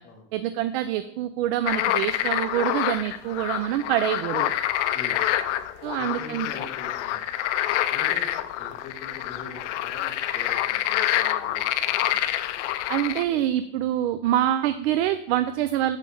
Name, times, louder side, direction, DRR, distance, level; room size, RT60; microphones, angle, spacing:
voice 1, 0.3-4.5 5.8-6.5 12.9-16.0, right 12 dB, 60° right, 11 dB, 0.5 m, -25 dB
sound 1, 1.6-13.2, left 13 dB, 80° left, 0.6 m, -27 dB
voice 2, 4.9-5.6 6.0-7.2 7.6-12.6, left 3 dB, 20° left, -3 dB, 1.5 m, -43 dB
9.0 x 3.2 x 5.5 m, 0.76 s
cardioid pair, 175°, 35 cm